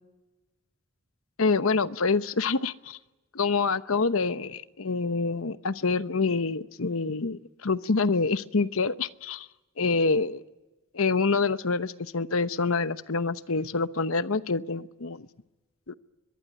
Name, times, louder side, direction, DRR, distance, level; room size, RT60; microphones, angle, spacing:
voice 1, 1.4-3.0 3.3-9.5 9.8-10.4 10.9-15.3 15.9-16.0, left 4 dB, 80° left, 13 dB, 0.9 m, -26 dB
23.5 x 22.0 x 9.8 m, 1.1 s
head